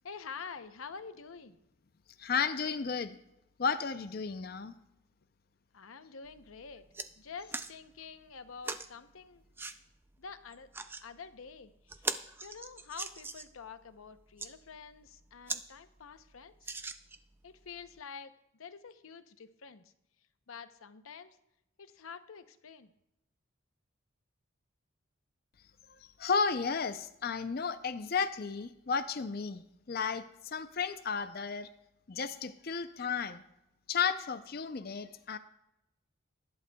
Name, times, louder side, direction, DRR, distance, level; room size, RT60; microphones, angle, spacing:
voice 1, 0.0-1.6 5.7-6.9 7.2-9.4 10.2-10.7 11.0-12.1 12.4-16.7 17.4-19.9 20.5-21.4 21.8-22.9, left 5 dB, 80° left, 10 dB, 0.7 m, -48 dB
voice 2, 2.2-3.2 3.6-4.7 26.2-31.7 32.1-33.4 33.9-35.4, left 5 dB, 45° left, 11 dB, 0.5 m, -33 dB
sound 1, 6.3-6.4 6.7-7.1 7.5-7.7 8.6-8.9 9.6-9.8 10.5-11.0 11.5-11.6 11.9-13.6 14.2-14.5 15.1-15.2 15.5-15.6 16.0-16.1 16.6-17.3 18.0-18.1, right 3 dB, 10° right, 0.3 m, -39 dB
19.5 x 11.0 x 2.3 m, 0.84 s
head